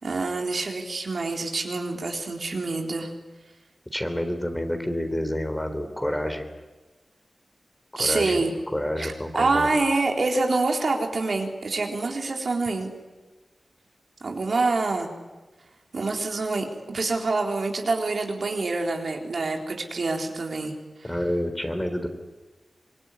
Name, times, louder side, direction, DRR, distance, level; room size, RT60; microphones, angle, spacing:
voice 1, 0.0-3.1 8.0-8.5 9.0-12.9 14.2-15.1 15.9-20.7 21.0-21.1, right 3 dB, 70° right, 2 dB, 3.9 m, -26 dB
voice 2, 3.9-6.5 7.9-8.4 8.7-9.8 21.0-22.1, left 1 dB, 10° left, 8 dB, 3.7 m, -28 dB
25.5 x 22.0 x 9.9 m, 1.2 s
wide cardioid pair, 70°, 0 cm